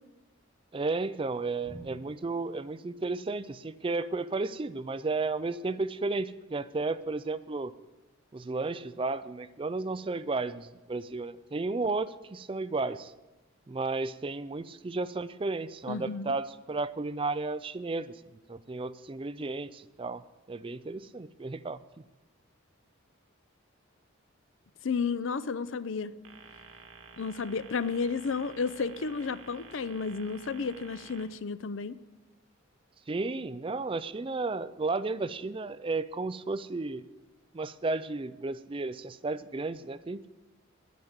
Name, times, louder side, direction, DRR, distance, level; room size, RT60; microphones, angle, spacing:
voice 1, 0.7-7.7 8.3-13.1 13.7-18.2 18.5-20.2 20.5-22.0 33.1-37.0 37.5-40.3, right 3 dB, 25° right, 14 dB, 0.4 m, -33 dB
Drum, 1.6-3.7, right 1 dB, 50° left, 5.7 m, -51 dB
voice 2, 15.9-16.3 24.8-26.1 27.2-31.9, left 5 dB, 65° left, 16 dB, 0.5 m, -32 dB
sound 1, 26.2-31.2, right 5 dB, 90° right, 1.6 m, -51 dB
10.5 x 9.4 x 8.0 m, 1.1 s
head